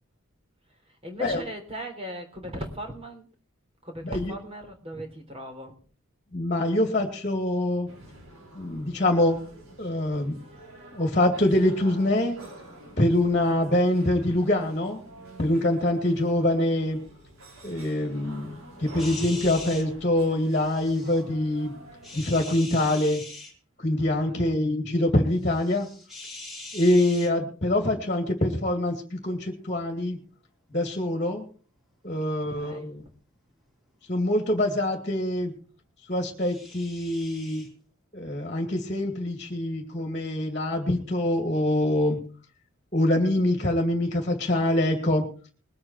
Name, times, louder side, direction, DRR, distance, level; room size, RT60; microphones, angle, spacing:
voice 1, 0.9-3.3 3.8-5.7 24.0-24.6 32.2-33.1, equal, 25° right, 4 dB, 3.6 m, -38 dB
voice 2, 6.3-7.9 8.6-9.4 9.8-10.4 10.9-12.4 13.0-15.0 15.4-17.0 17.6-21.7 22.1-23.2 23.8-25.9 26.7-30.2 30.7-31.5 32.0-33.0 34.1-35.5 36.1-37.7 38.1-42.2 42.9-45.3, left 1 dB, 35° left, 4 dB, 2.4 m, -24 dB
sound 1, 7.9-22.2, right 1 dB, 85° right, 4.4 m, -47 dB
sound 2, 19.0-19.8 20.5-21.2 22.0-23.5 25.4-27.3 36.4-37.7, left 2 dB, ahead, 3.7 m, -42 dB
21.5 x 8.7 x 4.4 m, 0.40 s
head